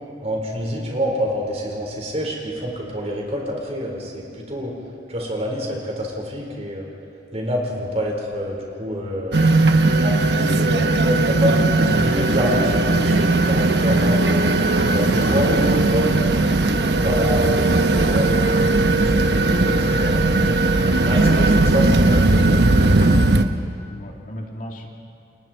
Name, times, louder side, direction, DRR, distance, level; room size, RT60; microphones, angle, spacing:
voice 1, 0.2-4.7 5.1-6.9 7.3-9.5 9.9-14.2 14.7-16.2 17.0-20.3 21.0-22.6, equal, 35° right, -1 dB, 4.8 m, -27 dB
sound 1, 9.3-23.4, right 2 dB, 65° right, 1.1 m, -18 dB
voice 2, 23.9-24.9, equal, 50° left, 0 dB, 2.7 m, -36 dB
29.5 x 28.0 x 4.6 m, 2.5 s
head